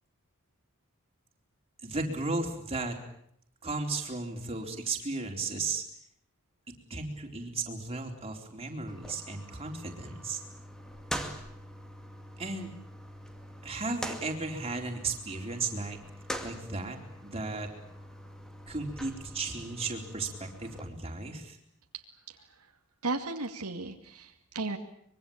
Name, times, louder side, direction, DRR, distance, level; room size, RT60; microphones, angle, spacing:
voice 1, 1.8-3.0 3.6-5.8 6.9-10.4 12.4-12.7 13.6-16.0 16.4-17.7 18.7-21.6, right 3 dB, 25° right, 2 dB, 4.1 m, -35 dB
sound 1, 8.9-20.9, equal, 5° left, 2.4 m, -43 dB
voice 2, 22.3-22.7 23.0-24.8, right 3 dB, 85° right, 4 dB, 2.4 m, -35 dB
24.5 x 23.0 x 8.8 m, 0.70 s
head